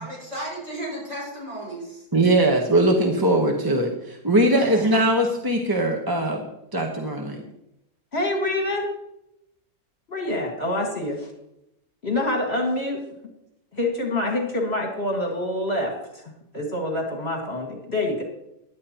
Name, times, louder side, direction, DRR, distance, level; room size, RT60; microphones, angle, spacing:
voice 1, 0.0-2.1 4.4-4.9, right 1 dB, 50° right, -4 dB, 6.1 m, -34 dB
voice 2, 2.1-6.4 6.7-7.4, right 1 dB, 15° right, 1 dB, 0.9 m, -21 dB
voice 3, 8.1-8.9 10.1-11.3 12.0-13.0 13.7-18.2, left 1 dB, 45° left, 0 dB, 2.2 m, -26 dB
16.0 x 11.0 x 2.9 m, 0.83 s
omnidirectional pair, 1.6 m